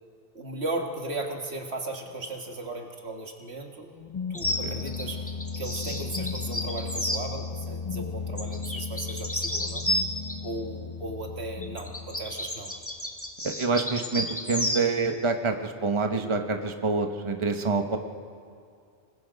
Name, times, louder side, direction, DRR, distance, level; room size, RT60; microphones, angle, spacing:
voice 1, 0.4-3.9 4.3-5.3 5.6-9.8 10.4-12.7, right 2 dB, 85° right, 2 dB, 2.1 m, -36 dB
sound 1, 3.9-12.7, left 5 dB, 40° left, 0.5 m, -36 dB
sound 2, 4.3-7.2 8.4-10.4 11.6-14.9, left 1 dB, 15° left, 1.8 m, -31 dB
voice 2, 13.4-18.0, right 4 dB, 30° right, 5 dB, 1.2 m, -27 dB
27.5 x 20.5 x 5.2 m, 2.3 s
omnidirectional pair, 1.1 m